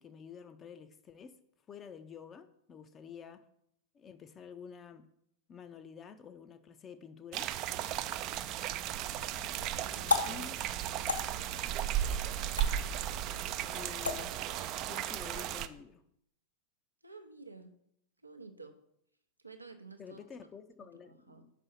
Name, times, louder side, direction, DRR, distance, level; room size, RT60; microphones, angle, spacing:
voice 1, 0.0-1.4 1.7-3.4 3.9-5.1 5.5-7.5 10.2-10.6 13.3-14.4 14.9-16.0 20.0-21.5, left 6 dB, 25° left, 10 dB, 0.5 m, -49 dB
sound 1, 7.3-15.7, right 11 dB, 40° right, 0.3 m, -35 dB
sound 2, 8.9-14.8, left 4 dB, 75° left, 0.7 m, -38 dB
voice 2, 9.9-10.4 17.0-17.7 18.2-18.8 19.4-20.2 20.8-21.4, right 3 dB, 85° right, 6 dB, 0.6 m, -51 dB
5.5 x 4.1 x 5.4 m, 0.74 s
figure-of-eight pair, 90°, 0 cm